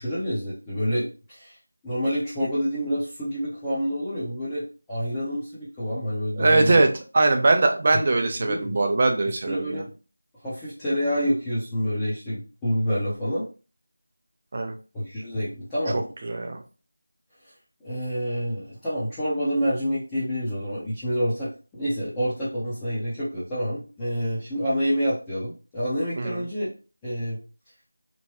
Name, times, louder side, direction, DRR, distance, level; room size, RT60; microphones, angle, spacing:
voice 1, 0.0-1.5 1.8-6.9 8.4-8.8 9.5-9.9 10.4-13.4 14.9-16.1 17.8-26.7 27.0-27.4, equal, 10° left, -12 dB, 0.7 m, -28 dB
voice 2, 6.4-9.8 14.5-14.7 15.9-16.6 26.2-26.4, right 2 dB, 35° right, 4 dB, 0.4 m, -22 dB
3.0 x 2.1 x 2.9 m, 0.34 s
figure-of-eight pair, 170°, 0 cm